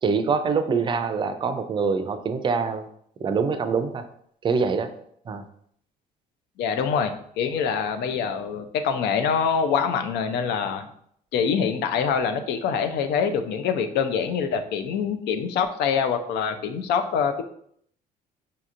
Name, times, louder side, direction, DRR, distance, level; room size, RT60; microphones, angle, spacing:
voice 1, 0.0-2.9 3.2-4.1 4.4-4.9 5.3-5.4, right 5 dB, 30° right, 9 dB, 0.4 m, -24 dB
voice 2, 6.6-10.9 11.3-17.4, left 6 dB, 80° left, 7 dB, 0.5 m, -25 dB
5.2 x 2.8 x 2.5 m, 0.67 s
cardioid pair, 110°, 17 cm